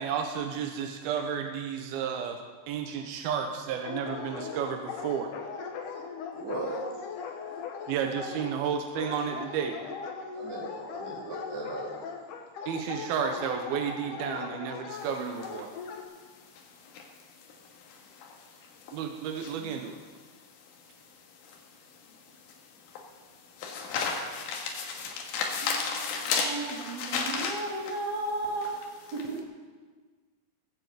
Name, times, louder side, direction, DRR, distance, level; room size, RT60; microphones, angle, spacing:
voice 1, 0.0-2.4 2.7-5.3 7.9-9.8 12.7-15.7 18.9-20.0, right 7 dB, 75° right, 4 dB, 2.2 m, -32 dB
Dog, 3.8-16.0, left 6 dB, 70° left, 2.0 m, -39 dB
voice 2, 6.3-6.8 7.3-7.4 7.8-7.9 10.3-11.9, right 2 dB, 55° right, -5 dB, 6.0 m, -38 dB
sound 1, 14.9-29.3, left 5 dB, 90° left, 4.1 m, -35 dB
voice 3, 25.6-28.7 29.1-29.4, right 2 dB, 30° right, -3 dB, 2.1 m, -35 dB
19.0 x 7.6 x 8.1 m, 1.5 s
omnidirectional pair, 5.5 m